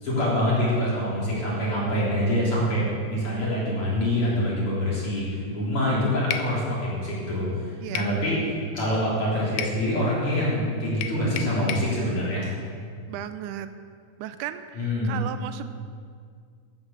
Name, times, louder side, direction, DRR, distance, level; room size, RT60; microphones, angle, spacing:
voice 1, 0.0-7.5 7.9-8.4 8.7-12.5 14.7-15.2, left 1 dB, 45° left, -7 dB, 4.5 m, -25 dB
sound 1, 6.3-6.5 8.0-8.2 9.6-9.8 11.0-11.9, left 8 dB, 80° left, 2.2 m, -31 dB
voice 2, 7.8-8.2 13.1-13.7 14.2-15.7, right 11 dB, 85° right, 10 dB, 2.1 m, -35 dB
13.0 x 7.8 x 7.1 m, 2.1 s
omnidirectional pair, 3.6 m